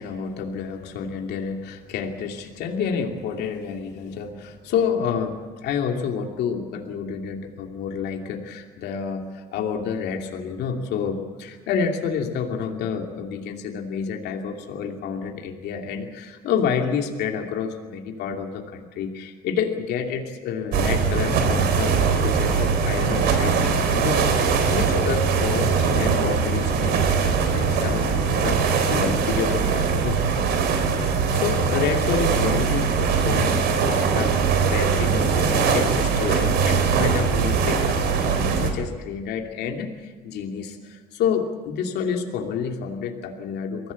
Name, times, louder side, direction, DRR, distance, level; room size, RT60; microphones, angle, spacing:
voice 1, 0.0-30.2 31.1-43.9, left 6 dB, 75° left, 3 dB, 2.8 m, -29 dB
sound 1, 20.7-38.7, right 5 dB, 80° right, 3.6 m, -21 dB
23.5 x 16.5 x 8.4 m, 1.5 s
cardioid pair, 110°, 17 cm